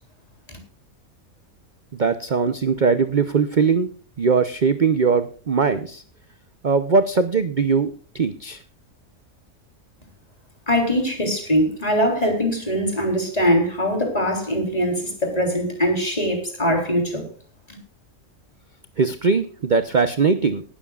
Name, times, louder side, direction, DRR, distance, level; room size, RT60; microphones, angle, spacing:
voice 1, 1.9-3.9 4.2-6.0 6.6-8.6 19.0-20.6, right 5 dB, 40° right, 10 dB, 0.8 m, -20 dB
voice 2, 10.7-17.3 17.7-17.8, equal, 25° left, 3 dB, 3.8 m, -22 dB
18.5 x 13.0 x 2.4 m, 0.40 s
omnidirectional pair, 1.5 m